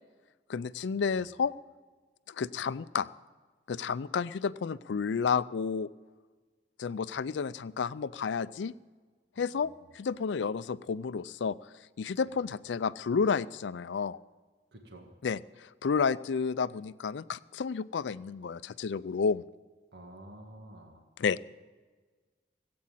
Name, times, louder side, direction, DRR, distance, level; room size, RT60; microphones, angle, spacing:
voice 1, 0.5-1.5 2.3-3.1 3.7-5.9 6.8-8.7 9.4-11.6 12.0-14.2 15.2-19.4 21.2-21.5, left 5 dB, 85° left, 17 dB, 0.4 m, -31 dB
voice 2, 14.7-15.1 19.9-21.0, right 1 dB, 70° right, 2 dB, 1.8 m, -50 dB
16.5 x 8.7 x 7.4 m, 1.4 s
head